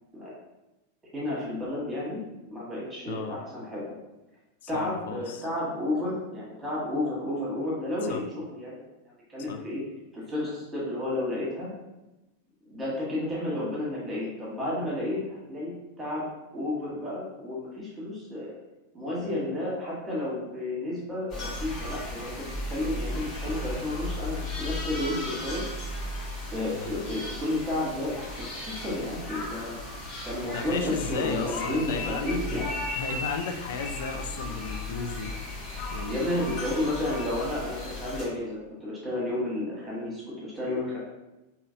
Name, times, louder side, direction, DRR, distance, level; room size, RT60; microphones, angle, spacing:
voice 1, 1.1-4.0 4.7-8.8 9.3-9.8 10.1-11.7 12.6-16.3 16.5-18.5 18.9-25.6 26.5-29.8 30.2-32.7 36.1-41.0, left 1 dB, 15° right, -6 dB, 1.4 m, -32 dB
voice 2, 3.1-3.4 4.6-5.5 8.1-8.2 9.5-9.6 26.7-27.1 30.5-32.6 32.9-35.3 35.9-36.3, left 5 dB, 55° left, 6 dB, 0.3 m, -34 dB
sound 1, 21.3-38.2, left 2 dB, 35° left, 1.1 m, -35 dB
3.8 x 2.9 x 2.7 m, 1.0 s
figure-of-eight pair, 90°, 0 cm